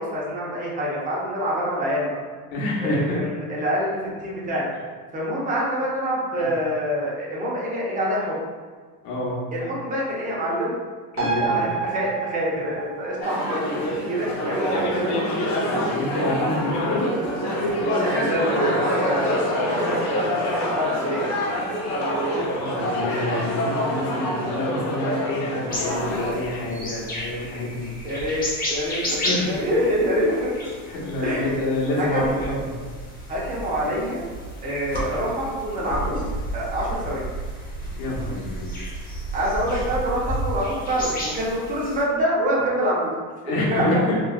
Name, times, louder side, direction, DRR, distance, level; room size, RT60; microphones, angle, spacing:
voice 1, 0.0-2.2 2.8-4.7 5.1-8.4 9.5-10.7 11.3-15.1 18.1-21.3 28.0-30.7 31.2-31.5 32.0-32.4 33.3-34.2 34.6-36.3 36.5-37.3 39.3-43.1 43.5-43.9, equal, 20° right, -5 dB, 0.7 m, -26 dB
voice 2, 2.5-3.2 6.4-6.5 9.0-9.4 11.1-11.7 15.8-17.1 22.3-27.9 29.2-29.5 30.9-32.8 38.0-38.7 43.4-44.2, left 2 dB, 75° left, -4 dB, 1.0 m, -27 dB
sound 1, 11.2-18.1 18.5-18.6, right 5 dB, 40° right, 1.2 m, -32 dB
sound 2, 13.2-26.3, equal, 40° left, 0.7 m, -25 dB
sound 3, 25.7-42.0, right 1 dB, 20° left, 0.9 m, -32 dB
3.0 x 2.4 x 2.3 m, 1.5 s
supercardioid pair, 110°, 43 cm